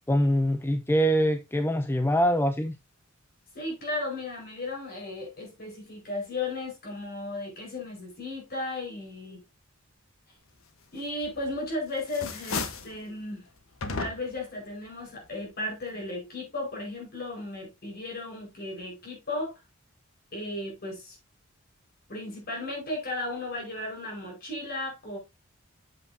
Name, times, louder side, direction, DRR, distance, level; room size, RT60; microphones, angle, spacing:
voice 1, 0.1-2.8, equal, 10° left, 0.5 m, -24 dB
voice 2, 3.5-9.4 10.9-13.4 14.0-19.5 20.3-21.2 22.1-25.2, left 2 dB, 50° left, 5.1 m, -35 dB
sound 1, 11.2-11.7 12.0-13.0 13.8-14.5, left 4 dB, 75° left, 1.2 m, -34 dB
8.2 x 7.8 x 2.8 m
head